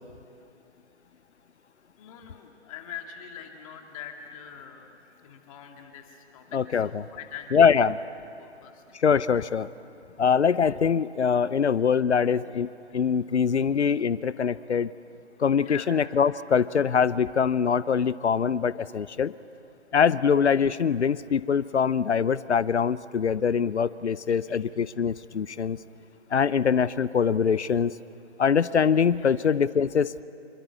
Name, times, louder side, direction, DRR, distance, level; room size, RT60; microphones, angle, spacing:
voice 1, 2.0-4.9 5.2-7.8 8.4-8.8 12.9-13.1 15.6-15.9 24.5-24.6 29.2-29.4, left 8 dB, 30° left, 4 dB, 2.3 m, -43 dB
voice 2, 6.5-7.0 7.5-8.0 9.0-9.7 10.2-14.9 15.4-19.3 19.9-25.8 26.3-27.9 28.4-30.1, left 6 dB, 70° left, 18 dB, 0.7 m, -23 dB
27.0 x 23.5 x 8.2 m, 2.6 s
figure-of-eight pair, 135°, 35 cm